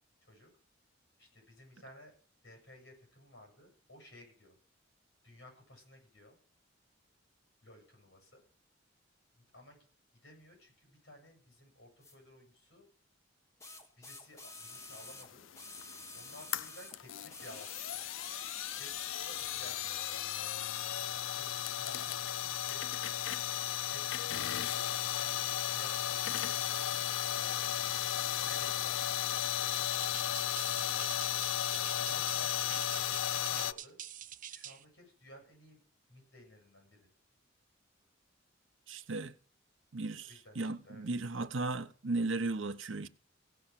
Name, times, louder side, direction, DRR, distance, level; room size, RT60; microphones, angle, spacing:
voice 1, 1.2-2.1 2.4-4.6 5.2-6.4 7.6-8.4 9.4-9.8 10.1-12.9 14.0-15.5 16.1-18.0 18.7-20.0 21.3-22.9 23.9-27.0 27.3-29.0 29.5-29.8 30.6-31.2 31.9-32.8 33.1-34.0 34.5-35.8 36.1-37.1 40.3-40.6 40.8-41.1, left 1 dB, 60° left, 7.7 m, -55 dB
sound 1, 12.0-12.2 13.6-17.0 17.3-20.3 21.2-21.3, left 2 dB, 15° left, 1.5 m, -49 dB
sound 2, 14.9-33.7, left 10 dB, 80° left, 0.5 m, -35 dB
sound 3, 29.7-34.8, right 10 dB, 45° right, 0.6 m, -46 dB
voice 2, 38.9-39.4 39.9-43.1, right 3 dB, 75° right, 0.8 m, -36 dB
17.0 x 5.7 x 7.4 m
head